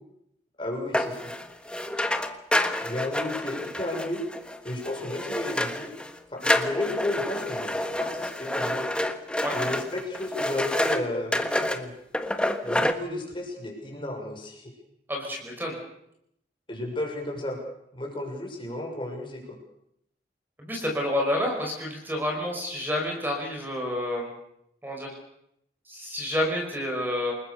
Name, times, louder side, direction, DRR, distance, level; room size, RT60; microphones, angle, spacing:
voice 1, 0.6-1.3 2.8-4.2 4.6-5.9 6.3-8.8 9.5-11.9 12.6-14.7 16.7-17.6 17.9-19.6, left 1 dB, 25° left, 1 dB, 6.4 m, -33 dB
sound 1, 0.9-6.1 6.4-11.0 11.3-11.8 12.1-12.9, left 1 dB, 5° left, 1.4 m, -28 dB
voice 2, 15.1-15.7 20.6-24.3 24.8-25.1 25.9-27.3, left 1 dB, 10° right, 0 dB, 5.2 m, -29 dB
28.5 x 20.5 x 6.8 m, 0.76 s
head